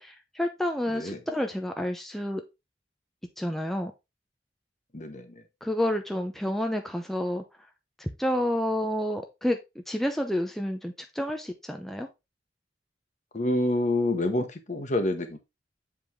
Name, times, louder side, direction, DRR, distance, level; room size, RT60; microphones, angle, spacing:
voice 1, 0.0-2.4 3.4-3.9 5.6-7.4 8.0-9.6 9.9-12.1, left 1 dB, ahead, 0.6 m, -29 dB
voice 2, 0.9-1.2 4.9-5.4 13.3-15.4, left 1 dB, 45° left, 1.2 m, -27 dB
7.3 x 4.8 x 3.5 m
head